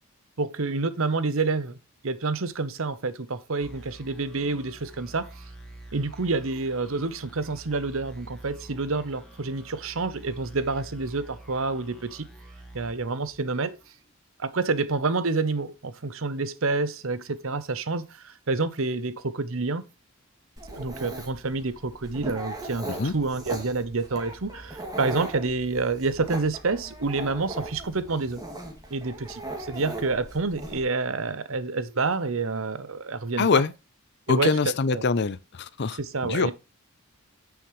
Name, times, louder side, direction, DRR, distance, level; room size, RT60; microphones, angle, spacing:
voice 1, 0.4-1.8 2.0-5.3 5.9-12.3 12.7-13.8 14.4-19.8 20.7-28.4 28.9-29.4 29.7-33.6 34.3-34.5 34.9-35.0 36.0-36.5, right 3 dB, 65° right, 0.8 m, -28 dB
sound 1, 3.6-13.9, right 1 dB, 5° left, 1.6 m, -47 dB
Dog, 20.6-30.8, right 1 dB, 15° right, 2.2 m, -38 dB
voice 2, 33.4-33.7 34.3-36.5, left 4 dB, 50° left, 0.6 m, -24 dB
9.1 x 7.1 x 3.1 m
head